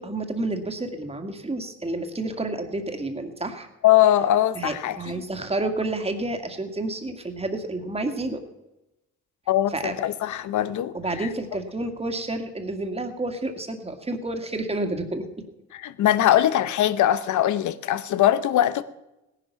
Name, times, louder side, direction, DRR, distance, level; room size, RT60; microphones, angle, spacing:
voice 1, 0.0-3.7 4.6-8.4 9.7-9.9 10.9-15.3, right 2 dB, 20° right, 2.1 m, -30 dB
voice 2, 3.8-5.2 9.5-11.3 15.7-18.8, left 12 dB, 75° left, 0.9 m, -21 dB
17.5 x 11.0 x 5.8 m
cardioid pair, 90°, 30 cm